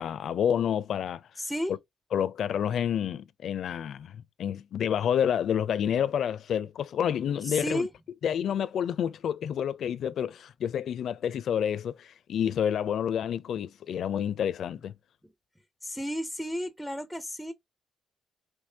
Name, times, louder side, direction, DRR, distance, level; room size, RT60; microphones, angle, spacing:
voice 1, 0.0-1.2 1.7-1.8 2.1-7.9 8.2-14.9, left 9 dB, 65° left, 0.4 m, -29 dB
voice 2, 1.4-1.7 7.4-7.9 15.8-17.5, equal, ahead, 0.4 m, -32 dB
5.2 x 3.1 x 2.7 m
cardioid pair, 90°, 0 cm